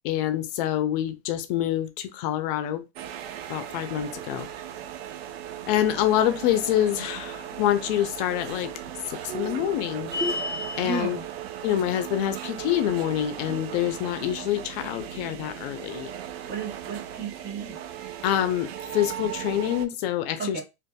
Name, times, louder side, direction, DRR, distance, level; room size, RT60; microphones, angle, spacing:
voice 1, 0.0-2.8 3.5-4.5 5.7-8.7 9.1-10.1 10.8-11.2 11.6-16.1 18.2-20.6, left 12 dB, 60° left, 0.6 m, -26 dB
sound 1, 3.0-19.9, right 10 dB, 80° right, 0.5 m, -37 dB
sound 2, 10.1-11.0, left 3 dB, 10° right, 0.8 m, -29 dB
voice 2, 10.8-11.3 16.4-17.8 20.4-20.6, right 5 dB, 30° right, 1.1 m, -33 dB
2.6 x 2.5 x 2.2 m
supercardioid pair, 110°, 31 cm